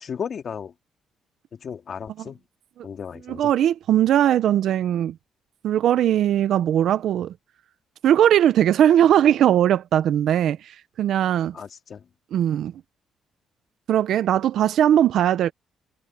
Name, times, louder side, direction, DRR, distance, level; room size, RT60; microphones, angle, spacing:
voice 1, 0.0-0.7 1.6-2.4 2.8-3.5 11.5-12.0, left 7 dB, 50° left, 2.0 m, -34 dB
voice 2, 3.3-5.1 5.6-7.3 8.0-11.5 12.3-12.7 13.9-15.5, right 10 dB, 75° right, 0.6 m, -19 dB
cardioid pair, 90°, 0 cm